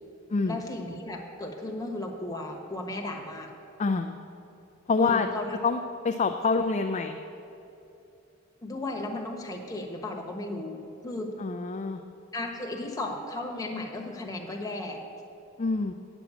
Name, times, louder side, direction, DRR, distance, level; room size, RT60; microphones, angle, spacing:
voice 1, 0.5-3.5 5.0-5.5 8.6-11.3 12.3-15.0, left 2 dB, 20° left, 1 dB, 1.2 m, -35 dB
voice 2, 3.8-4.2 4.9-5.3 5.6-5.8 6.0-7.2 11.4-12.0 15.6-15.9, left 4 dB, 35° left, 5 dB, 0.4 m, -26 dB
9.1 x 7.0 x 8.3 m, 2.8 s
head